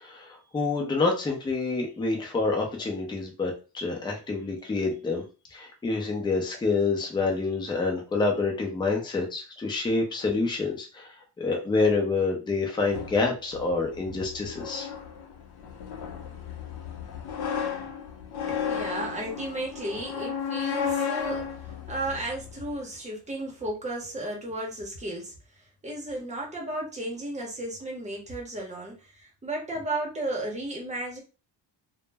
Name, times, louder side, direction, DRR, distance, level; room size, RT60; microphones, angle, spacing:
voice 1, 0.0-5.2 5.5-11.1 11.4-14.9, left 3 dB, 10° left, 1 dB, 0.4 m, -27 dB
sound 1, 12.9-22.8, left 7 dB, 65° left, 0.5 m, -34 dB
voice 2, 18.5-25.3 25.8-31.2, right 1 dB, 15° right, -2 dB, 0.7 m, -34 dB
2.0 x 2.0 x 3.3 m, 0.33 s
wide cardioid pair, 165°, 42 cm